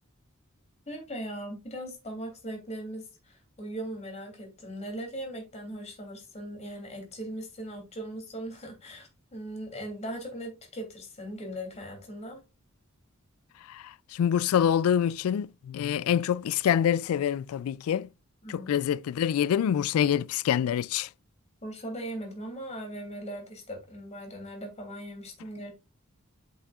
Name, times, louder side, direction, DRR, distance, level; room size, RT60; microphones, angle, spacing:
voice 1, 0.9-12.4 18.4-18.7 21.6-25.7, right 1 dB, 30° left, 2.9 m, -39 dB
voice 2, 13.7-18.1 18.5-21.1, left 9 dB, 85° left, 0.3 m, -26 dB
8.0 x 6.3 x 2.4 m
head